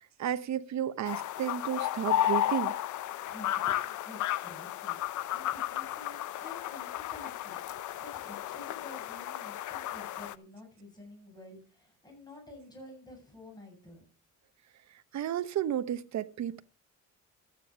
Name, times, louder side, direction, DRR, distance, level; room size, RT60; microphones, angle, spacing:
voice 1, 0.0-2.7 15.1-16.6, right 10 dB, 65° right, 1.0 m, -32 dB
sound 1, 1.0-10.3, left 12 dB, 75° left, 0.8 m, -33 dB
voice 2, 3.2-14.0, left 2 dB, 15° left, 7.6 m, -50 dB
13.5 x 9.2 x 5.1 m
cardioid pair, 90°, 30 cm